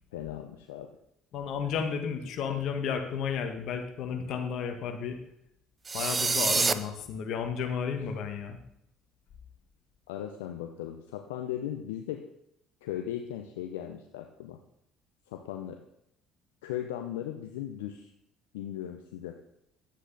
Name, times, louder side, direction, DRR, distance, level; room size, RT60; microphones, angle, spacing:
voice 1, 0.1-0.9 2.5-2.6 10.1-12.2 12.8-14.6 15.3-15.8 16.6-18.1 18.5-19.3, left 11 dB, 80° left, 5 dB, 0.6 m, -37 dB
voice 2, 1.3-5.2 5.9-8.6, left 6 dB, 60° left, 5 dB, 1.5 m, -32 dB
sound 1, 5.9-6.7, right 4 dB, 30° right, 0.6 m, -26 dB
10.5 x 8.3 x 4.0 m, 0.77 s
hypercardioid pair, 65°, 0 cm